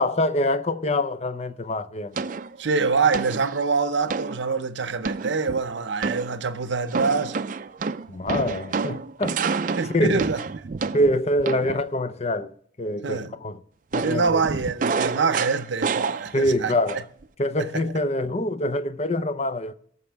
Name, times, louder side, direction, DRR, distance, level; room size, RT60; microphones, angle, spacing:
voice 1, 0.0-2.2 8.1-9.4 9.9-10.2 10.9-13.6 13.9-14.4 16.3-17.0 17.4-19.7, left 1 dB, 35° left, 0.6 m, -25 dB
sound 1, 2.2-2.6 3.1-3.6 4.1-4.4 5.0-5.6 6.0-6.4 6.9-11.9 13.9-16.6 16.9-17.2, right 4 dB, 45° right, 0.4 m, -29 dB
voice 2, 2.6-7.3 9.8-10.4 13.0-13.3 14.0-17.0 17.6-17.7, right 4 dB, 75° right, 0.7 m, -25 dB
18.5 x 6.9 x 3.4 m
head